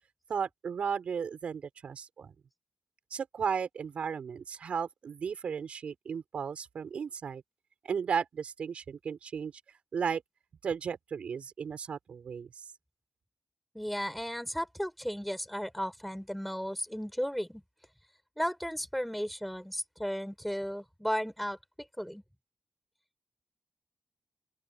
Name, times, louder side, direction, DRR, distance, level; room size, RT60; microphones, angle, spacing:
voice 1, 0.3-2.3 3.1-7.4 7.8-9.5 9.9-10.2 10.6-12.6, right 6 dB, 65° right, 6.9 m, -35 dB
voice 2, 13.7-17.6 18.4-21.6 22.0-22.2, equal, ahead, 4.9 m, -34 dB
open air
wide cardioid pair, 150°, 2 cm